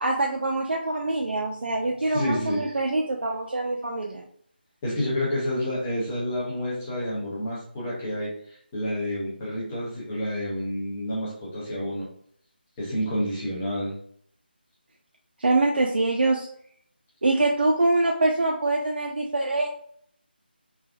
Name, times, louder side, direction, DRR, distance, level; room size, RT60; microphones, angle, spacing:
voice 1, 0.0-4.2 15.4-16.5 17.2-19.7, right 2 dB, 75° right, -1 dB, 0.5 m, -24 dB
voice 2, 2.1-2.6 4.8-8.3 8.7-12.1 12.8-13.9, equal, 5° left, -6 dB, 0.3 m, -29 dB
3.3 x 2.3 x 2.3 m, 0.64 s
figure-of-eight pair, 175°, 6 cm